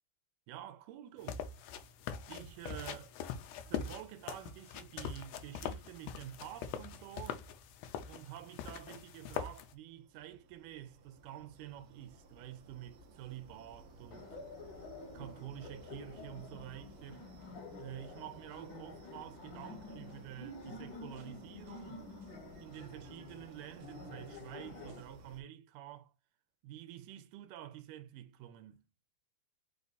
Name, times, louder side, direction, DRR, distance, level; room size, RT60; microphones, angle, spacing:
voice 1, 0.5-1.5 2.3-3.2 3.7-7.4 8.0-14.4 15.1-17.3 17.8-22.1 22.6-26.1 26.6-28.8, right 12 dB, 90° right, 2.2 m, -49 dB
sound 1, 1.2-9.7, left 7 dB, 80° left, 1.5 m, -43 dB
sound 2, 9.6-25.4, right 2 dB, 65° right, 1.4 m, -57 dB
Laughter, 14.1-25.0, left 2 dB, 60° left, 1.3 m, -50 dB
5.2 x 2.4 x 4.0 m
omnidirectional pair, 3.6 m